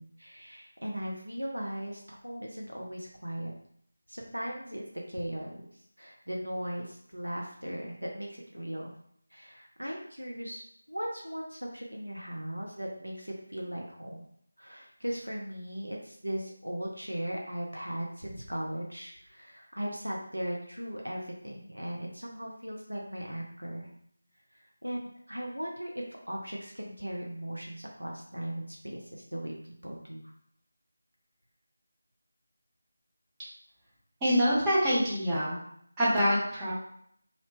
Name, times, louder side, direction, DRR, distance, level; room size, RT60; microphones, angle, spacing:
voice 1, 0.0-3.5 4.1-8.9 9.3-14.3 14.6-23.9 24.5-25.0 25.3-30.3, equal, 85° right, -1 dB, 0.5 m, -38 dB
voice 2, 34.2-35.6 36.0-36.7, equal, 10° right, -9 dB, 0.7 m, -25 dB
2.7 x 2.0 x 2.9 m, 0.68 s
figure-of-eight pair, 165°, 0 cm